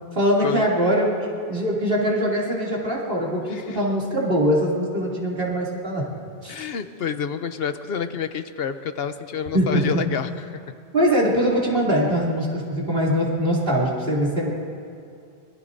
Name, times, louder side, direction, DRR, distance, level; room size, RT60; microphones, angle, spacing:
voice 1, 0.1-1.1 1.5-6.0 6.4-6.5 9.5-10.0 10.9-14.5, equal, 60° right, -4 dB, 3.0 m, -22 dB
voice 2, 3.5-3.8 6.5-10.4, left 7 dB, 75° left, 10 dB, 0.9 m, -28 dB
24.5 x 22.5 x 2.7 m, 2.4 s
omnidirectional pair, 1.0 m